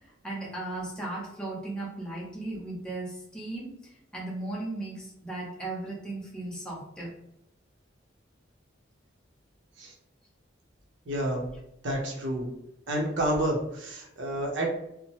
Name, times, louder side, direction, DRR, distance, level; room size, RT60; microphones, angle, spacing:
voice 1, 0.2-3.7 4.1-7.1, right 2 dB, 5° left, -5 dB, 0.8 m, -36 dB
voice 2, 11.1-11.4 11.8-12.5 12.9-14.7, right 1 dB, 70° right, 0 dB, 0.7 m, -29 dB
2.8 x 2.0 x 3.0 m, 0.81 s
head